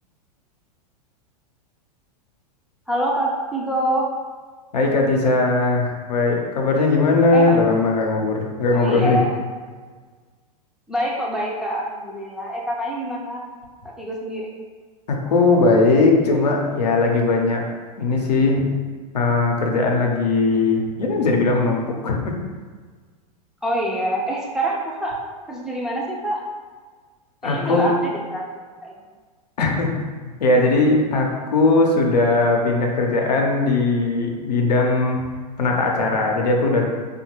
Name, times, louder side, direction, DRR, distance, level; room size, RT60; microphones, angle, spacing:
voice 1, 2.9-4.1 7.3-7.6 8.7-9.3 10.9-13.4 14.0-14.5 23.6-25.2 25.5-26.4 27.4-28.5 28.8-28.9, right 1 dB, 5° right, -4 dB, 0.4 m, -25 dB
voice 2, 4.7-9.2 15.1-17.6 18.0-18.7 19.1-22.3 27.4-27.9 29.6-29.9 30.4-35.3 35.6-36.9, left 3 dB, 90° left, 0 dB, 0.6 m, -19 dB
2.7 x 2.3 x 3.0 m, 1.5 s
hypercardioid pair, 110°, 20 cm